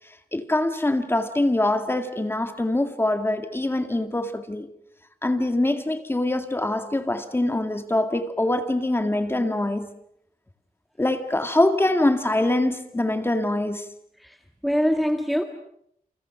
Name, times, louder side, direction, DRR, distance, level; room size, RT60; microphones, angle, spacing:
voice 1, 0.3-4.7 5.2-9.9 11.0-13.9, left 1 dB, 15° left, 2.1 m, -24 dB
voice 2, 14.2-15.4, equal, ahead, 1.7 m, -24 dB
29.0 x 29.0 x 6.0 m
wide cardioid pair, 160°, 15 cm